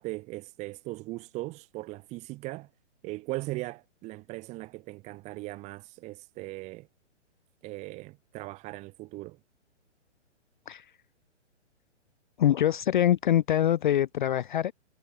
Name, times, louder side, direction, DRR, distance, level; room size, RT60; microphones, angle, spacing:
voice 1, 0.0-2.7 3.0-6.9 7.6-9.4, right 20 dB, 20° right, 0.9 m, -39 dB
voice 2, 12.4-14.7, left 11 dB, 45° left, 0.4 m, -24 dB
hypercardioid pair, 130°, 36 cm